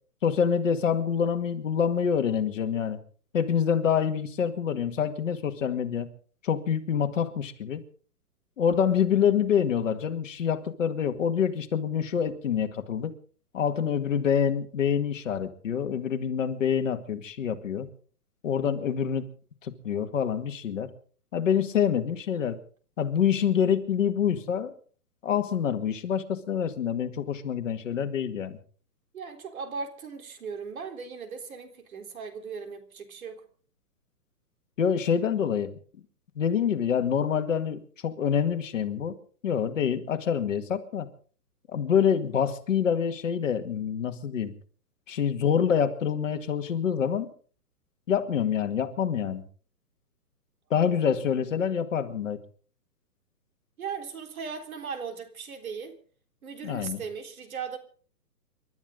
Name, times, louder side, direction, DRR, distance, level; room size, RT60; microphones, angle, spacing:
voice 1, 0.2-3.0 3.3-6.1 6.4-7.8 8.6-13.1 13.5-17.9 18.4-19.3 19.6-20.9 21.3-22.6 23.0-24.7 25.2-28.6 34.8-35.7 36.4-39.2 39.4-41.1 41.7-44.5 45.1-47.3 48.1-49.4 50.7-52.4 56.6-57.0, left 8 dB, 50° left, 2.1 m, -26 dB
voice 2, 29.1-33.4 53.8-56.0 56.4-57.8, right 5 dB, 60° right, 3.8 m, -38 dB
29.0 x 12.5 x 3.8 m
hypercardioid pair, 170°, 48 cm